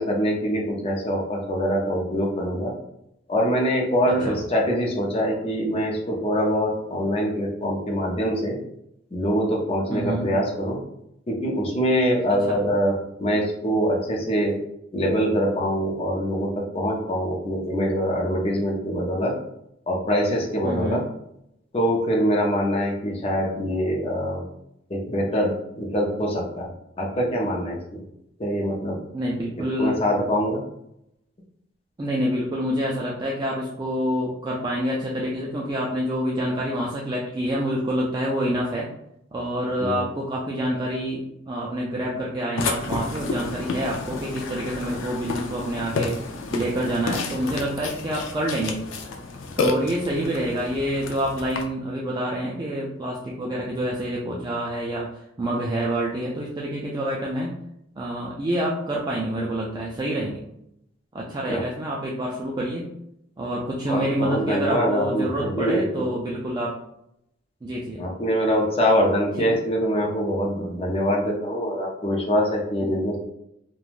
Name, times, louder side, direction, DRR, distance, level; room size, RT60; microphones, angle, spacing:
voice 1, 0.0-2.7 3.3-8.5 9.1-10.8 11.3-12.9 13.2-14.5 14.9-19.3 19.9-21.0 21.7-24.4 24.9-26.7 27.0-28.0 28.4-29.0 29.8-30.6 39.8-40.0 61.5-61.6 63.9-65.8 68.0-73.2, equal, 30° left, -1 dB, 0.5 m, -24 dB
voice 2, 9.9-10.3 12.5-12.6 20.6-21.0 29.1-30.0 32.0-38.9 39.3-46.2 46.5-48.8 49.6-57.6 58.0-60.4 61.1-62.9 63.4-66.8 67.6-68.0 69.4-69.5 72.8-73.0, right 1 dB, 20° right, -3 dB, 0.3 m, -27 dB
Burping eructation, 42.6-51.6, left 3 dB, 80° left, 0.4 m, -30 dB
3.1 x 2.2 x 2.4 m, 0.78 s
head